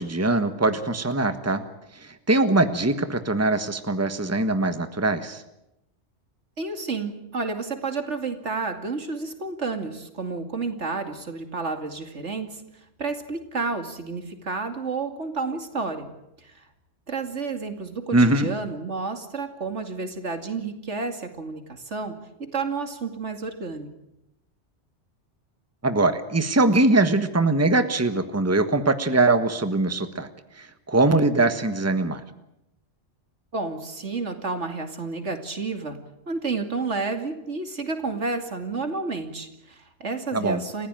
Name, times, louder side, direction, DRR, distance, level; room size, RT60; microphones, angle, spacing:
voice 1, 0.0-1.6 2.3-5.4 18.1-18.5 25.8-30.3 30.6-32.2 40.3-40.6, right 2 dB, 15° right, 9 dB, 1.4 m, -22 dB
voice 2, 6.6-12.6 13.0-16.1 16.4-16.7 17.1-22.2 22.5-23.9 33.5-36.0 36.3-40.9, right 4 dB, 75° right, 6 dB, 2.8 m, -30 dB
29.5 x 16.0 x 9.1 m, 0.89 s
omnidirectional pair, 1.2 m